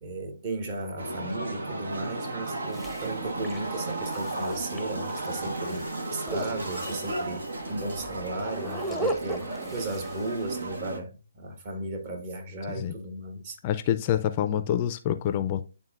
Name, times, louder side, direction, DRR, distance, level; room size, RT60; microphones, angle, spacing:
voice 1, 0.0-13.6 14.5-14.6, right 2 dB, 40° right, 1.4 m, -35 dB
sound 1, 1.0-11.0, right 2 dB, 80° right, 1.3 m, -34 dB
sound 2, 2.5-10.7, right 1 dB, 5° right, 0.8 m, -37 dB
voice 2, 13.6-15.6, left 10 dB, 30° left, 0.4 m, -27 dB
10.5 x 3.6 x 2.5 m
hypercardioid pair, 150°, 0 cm